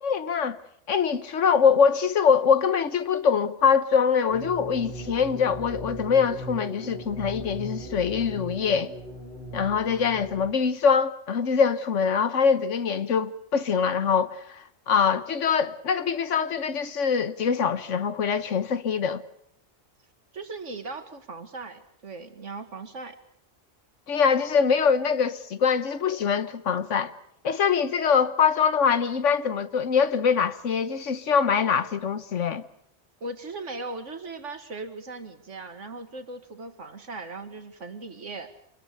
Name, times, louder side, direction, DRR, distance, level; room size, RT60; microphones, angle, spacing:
voice 1, 0.0-0.6 0.9-8.9 9.5-19.2 24.1-27.1 27.4-32.6, left 6 dB, 80° left, 1.5 m, -23 dB
sound 1, 4.3-10.5, right 1 dB, 60° left, 4.8 m, -38 dB
voice 2, 20.3-23.2 33.2-38.5, right 3 dB, 80° right, 2.3 m, -38 dB
26.5 x 21.5 x 6.8 m
omnidirectional pair, 1.2 m